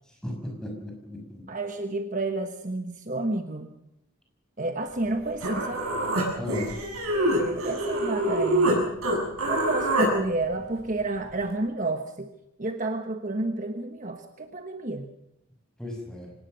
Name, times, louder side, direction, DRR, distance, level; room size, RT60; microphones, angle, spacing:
voice 1, 0.2-1.5 6.3-6.7 15.8-16.3, left 1 dB, 5° left, 1 dB, 5.9 m, -35 dB
voice 2, 1.5-3.7 4.6-5.9 7.1-8.9 9.5-12.3 12.6-15.1, right 2 dB, 35° right, 6 dB, 1.2 m, -30 dB
Human voice, 5.1-5.2 5.4-8.8 9.0-10.1, right 1 dB, 85° right, 7.7 m, -25 dB
25.0 x 18.5 x 6.6 m, 0.82 s
head